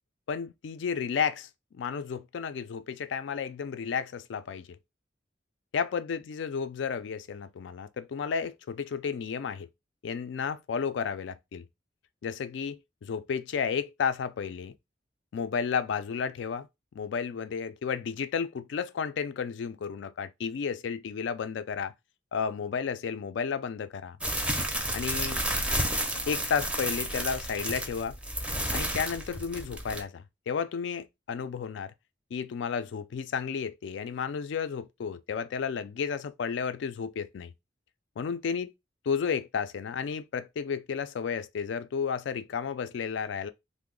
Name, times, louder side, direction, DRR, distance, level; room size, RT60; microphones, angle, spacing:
voice 1, 0.3-4.7 5.7-9.7 10.0-11.6 12.2-14.7 15.3-16.7 17.0-21.9 22.3-24.2 24.9-25.4 26.3-28.2 28.7-31.9 32.3-37.5 38.2-38.7 39.1-43.5, left 6 dB, 75° left, 0.3 m, -32 dB
sound 1, 24.2-30.0, right 1 dB, 5° right, 0.5 m, -31 dB
2.9 x 2.0 x 3.6 m
head